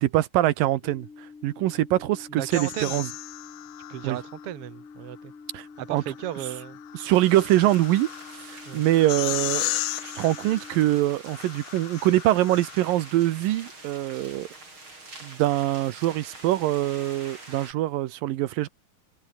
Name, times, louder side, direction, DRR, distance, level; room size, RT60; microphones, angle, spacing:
voice 1, 0.0-1.1 1.4-3.1 4.0-4.2 5.5-6.0 6.9-8.1 8.5-14.5 15.2-18.7, right 15 dB, 80° right, 2.5 m, -24 dB
sound 1, 0.8-10.8, left 4 dB, 60° left, 7.0 m, -47 dB
voice 2, 2.3-3.0 3.9-5.3 5.8-6.8 8.6-8.8, right 12 dB, 60° right, 1.6 m, -35 dB
sound 2, 2.5-4.5 5.9-13.1, left 17 dB, 75° left, 2.0 m, -36 dB
sound 3, 7.1-17.7, right 2 dB, 35° right, 7.8 m, -45 dB
omnidirectional pair, 4.2 m